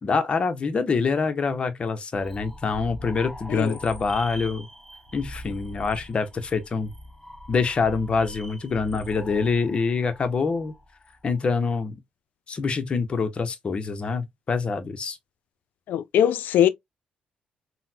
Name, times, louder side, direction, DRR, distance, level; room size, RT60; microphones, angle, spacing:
voice 1, 0.0-4.7 5.1-6.9 7.5-10.7 11.2-12.0 12.5-15.2, left 4 dB, 35° left, 0.6 m, -25 dB
sound 1, 2.2-11.8, equal, 5° left, 1.5 m, -42 dB
voice 2, 15.9-16.7, left 10 dB, 80° left, 0.3 m, -21 dB
3.9 x 2.0 x 2.7 m
cardioid pair, 125°, 3 cm